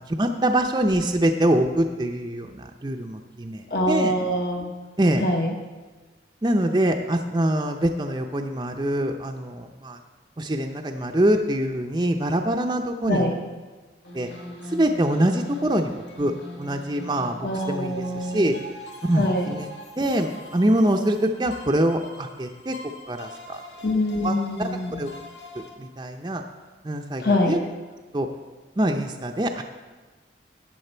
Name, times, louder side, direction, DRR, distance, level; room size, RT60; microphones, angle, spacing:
voice 1, 0.0-4.1 5.0-5.2 6.4-10.0 10.4-13.3 14.1-14.3 14.7-15.9 16.2-16.3 16.6-17.4 17.7-18.6 19.0-19.7 20.0-22.8 23.1-23.6 24.2-24.3 24.6-24.7 25.0-25.1 25.6-26.4 26.8-27.6 28.1-28.3 28.8-29.6, right 1 dB, 25° right, 3 dB, 0.5 m, -24 dB
voice 2, 3.7-4.7 5.2-5.5 13.1-13.4 17.4-18.6 19.1-19.5 23.8-25.1 27.2-27.6, left 1 dB, 55° left, 3 dB, 1.1 m, -24 dB
sound 1, 14.0-25.7, left 1 dB, 85° left, 2.1 m, -42 dB
13.5 x 8.9 x 4.4 m, 1.3 s
head